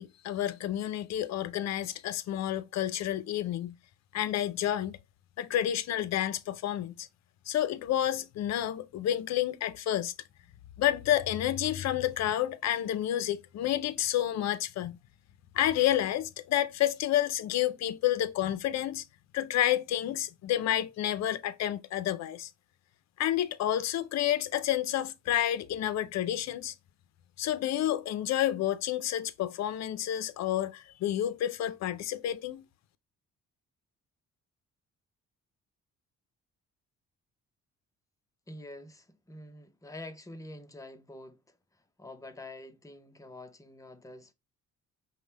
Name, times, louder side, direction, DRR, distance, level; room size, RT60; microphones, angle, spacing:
voice 1, 0.0-3.7 4.1-5.0 5.4-7.1 7.5-10.1 10.8-15.0 15.5-19.0 19.3-22.5 23.2-26.7 27.4-32.6, left 12 dB, 60° left, 0.5 m, -30 dB
voice 2, 38.5-44.3, left 1 dB, 10° left, 0.6 m, -47 dB
5.2 x 2.2 x 3.2 m
cardioid pair, 90°, 30 cm